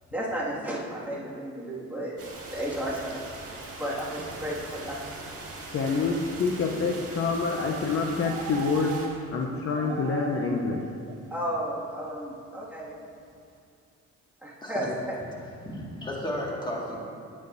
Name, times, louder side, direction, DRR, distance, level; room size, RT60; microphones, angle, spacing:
voice 1, 0.1-2.2 2.5-3.3 3.7-5.0 11.3-13.0 14.4-15.2, equal, 5° right, -7 dB, 1.9 m, -33 dB
sound 1, 2.2-9.1, right 2 dB, 50° right, 1.9 m, -41 dB
voice 2, 5.7-10.9, left 4 dB, 45° left, 1 dB, 0.7 m, -27 dB
sound 2, 8.2-9.4 9.7-10.7 11.0-11.3, right 8 dB, 90° right, 0.6 m, -38 dB
voice 3, 15.6-17.0, left 1 dB, 15° left, -3 dB, 1.8 m, -33 dB
9.4 x 8.6 x 2.6 m, 2.4 s
cardioid pair, 90°, 30 cm